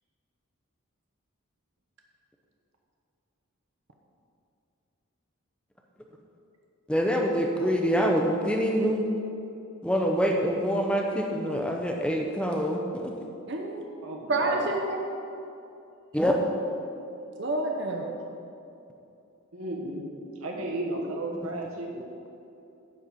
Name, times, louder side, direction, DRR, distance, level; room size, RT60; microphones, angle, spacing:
voice 1, 6.9-9.0 9.8-13.1 16.1-16.3, equal, 5° left, 1 dB, 0.6 m, -25 dB
voice 2, 13.5-13.8 14.3-15.0 17.4-18.1, right 2 dB, 55° right, 1 dB, 0.7 m, -28 dB
voice 3, 14.0-14.8 19.5-22.0, right 1 dB, 85° right, -1 dB, 1.4 m, -34 dB
10.5 x 4.1 x 7.3 m, 2.7 s
head